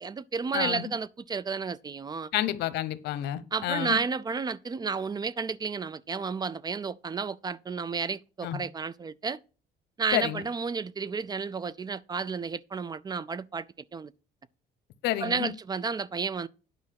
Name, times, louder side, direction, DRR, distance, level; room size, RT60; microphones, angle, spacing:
voice 1, 0.0-2.3 3.5-9.4 10.0-13.7 13.9-14.1 15.2-16.5, right 5 dB, 25° right, 0.4 m, -32 dB
voice 2, 0.5-0.9 2.3-4.0 8.4-8.6 10.1-10.4 15.0-15.5, left 13 dB, 80° left, 0.9 m, -30 dB
9.7 x 5.2 x 5.8 m
cardioid pair, 110°, 17 cm